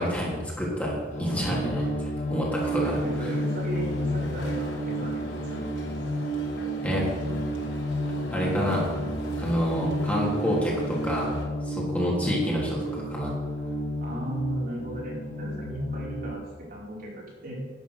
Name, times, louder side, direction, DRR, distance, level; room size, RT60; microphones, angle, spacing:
voice 1, 0.0-1.8 2.3-3.0 6.8-7.1 8.3-8.9 9.4-11.3 11.6-13.4, equal, 10° left, -4 dB, 3.3 m, -27 dB
sound 1, 1.1-16.3, right 1 dB, 40° left, 2.2 m, -31 dB
voice 2, 1.4-2.0 2.8-5.6 14.0-17.5, right 1 dB, 55° right, -4 dB, 5.0 m, -36 dB
sound 2, 2.5-11.5, left 1 dB, 90° left, 4.1 m, -41 dB
12.0 x 10.0 x 6.4 m, 1.4 s
head